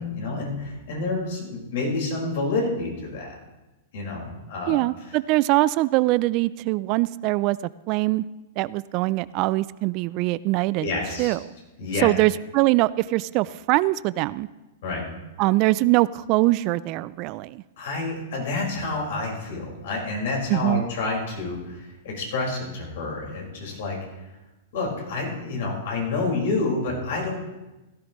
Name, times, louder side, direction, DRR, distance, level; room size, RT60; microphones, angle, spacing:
voice 1, 0.0-3.3 3.9-4.8 5.1-5.2 10.7-11.3 11.8-12.1 14.8-15.0 17.8-24.0 24.7-27.3, left 3 dB, 65° left, -2 dB, 4.8 m, -28 dB
voice 2, 4.7-7.6 7.9-8.2 8.6-10.9 11.2-11.4 12.0-14.5 15.4-17.6 20.5-20.8, right 19 dB, 45° right, 19 dB, 0.3 m, -22 dB
17.0 x 12.5 x 3.1 m, 1.0 s
hypercardioid pair, 120°, 0 cm